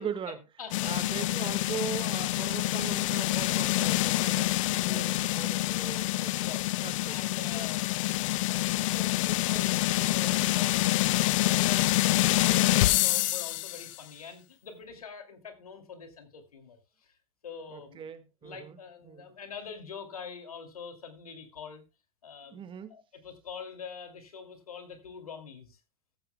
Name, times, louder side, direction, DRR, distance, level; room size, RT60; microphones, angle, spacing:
voice 1, 0.0-0.4 0.8-6.5 6.8-7.2 7.5-7.7 17.7-19.3 22.5-23.0, right 7 dB, 30° right, 10 dB, 1.8 m, -40 dB
voice 2, 0.6-1.3 4.7-5.1 6.3-6.7 7.1-7.9 8.9-17.1 17.4-18.0 18.4-21.8 22.2-22.6 22.9-25.8, left 5 dB, 85° left, 6 dB, 2.7 m, -44 dB
sound 1, 0.7-13.9, left 18 dB, 60° left, 0.5 m, -27 dB
14.5 x 14.0 x 2.3 m, 0.28 s
hypercardioid pair, 100°, 18 cm